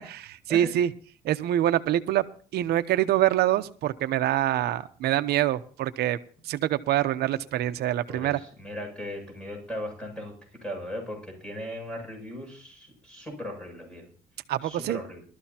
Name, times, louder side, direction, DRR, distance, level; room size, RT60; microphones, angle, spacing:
voice 1, 0.1-0.9 1.2-2.3 2.5-6.2 6.4-8.4 14.5-15.0, right 13 dB, 70° right, 12 dB, 0.9 m, -25 dB
voice 2, 8.1-10.3 10.6-14.1 14.6-15.2, left 1 dB, 5° left, 1 dB, 7.7 m, -38 dB
20.5 x 13.5 x 2.9 m, 0.43 s
cardioid pair, 110°, 17 cm